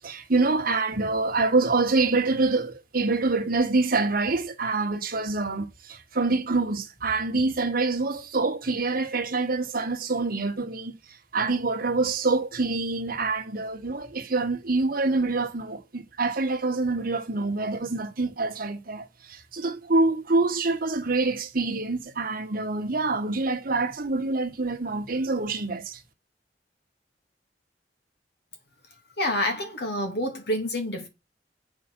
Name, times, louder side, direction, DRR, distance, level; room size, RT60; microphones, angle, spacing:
voice 1, 0.0-10.9 11.3-26.0, right 3 dB, 50° right, 1.4 m, -26 dB
voice 2, 29.2-31.1, left 1 dB, 60° left, 2.5 m, -28 dB
7.7 x 5.1 x 6.1 m
head